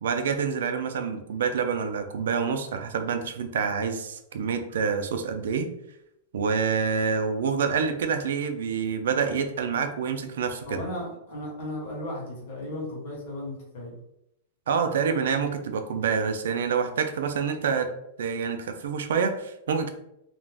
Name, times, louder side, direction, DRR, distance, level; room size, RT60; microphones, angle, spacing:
voice 1, 0.0-5.7 6.3-10.8 14.7-17.9 18.2-19.9, right 6 dB, 90° right, 7 dB, 0.4 m, -27 dB
voice 2, 10.6-14.0, left 1 dB, 50° left, -3 dB, 1.1 m, -35 dB
2.4 x 2.1 x 3.3 m, 0.81 s
supercardioid pair, 180°, 0 cm